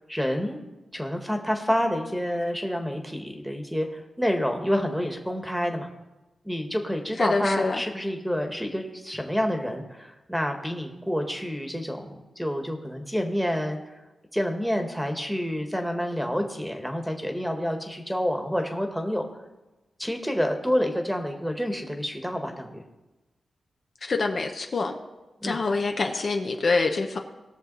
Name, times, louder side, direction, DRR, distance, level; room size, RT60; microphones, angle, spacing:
voice 1, 0.1-0.6 0.9-5.9 6.4-13.8 14.3-19.2 20.0-22.8 25.4-25.6, equal, ahead, 4 dB, 1.5 m, -28 dB
voice 2, 7.2-7.8 24.0-25.0 25.4-27.2, left 3 dB, 55° left, 3 dB, 1.0 m, -26 dB
19.5 x 6.6 x 4.0 m, 1.1 s
wide cardioid pair, 90°, 0 cm